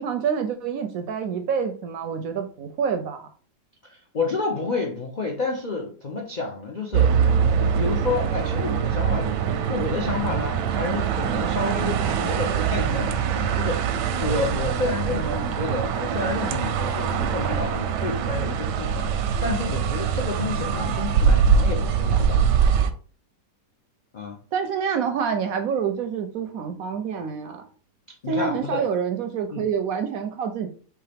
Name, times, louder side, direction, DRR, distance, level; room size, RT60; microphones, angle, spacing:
voice 1, 0.0-3.3 15.1-15.5 24.5-27.6 28.3-30.7, right 6 dB, 70° right, 0.8 m, -27 dB
voice 2, 3.9-7.2 7.6-22.4 24.1-24.4 28.2-28.8 29.5-29.7, left 3 dB, 70° left, 0.4 m, -30 dB
sound 1, 6.9-22.9, right 7 dB, 85° right, 1.2 m, -23 dB
4.6 x 3.2 x 3.4 m
omnidirectional pair, 1.8 m